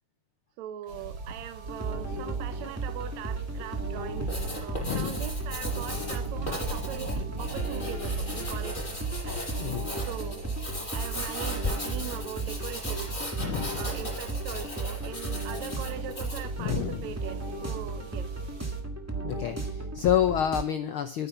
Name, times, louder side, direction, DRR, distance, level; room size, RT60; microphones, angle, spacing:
voice 1, 0.6-8.8 9.3-9.4 10.1-10.5 10.9-13.1 13.8-18.3, right 11 dB, 70° right, 11 dB, 2.2 m, -41 dB
sound 1, 0.9-18.8, right 2 dB, 35° right, 2.2 m, -42 dB
sound 2, 1.6-20.6, right 3 dB, 15° right, 0.6 m, -35 dB
Writing, 4.1-16.5, left 2 dB, 15° left, 5.5 m, -37 dB
voice 2, 4.7-5.3 9.6-9.9 13.4-13.9 16.6-17.0 19.2-21.3, left 10 dB, 90° left, 8 dB, 1.1 m, -29 dB
11.5 x 9.7 x 5.7 m, 0.38 s
omnidirectional pair, 3.5 m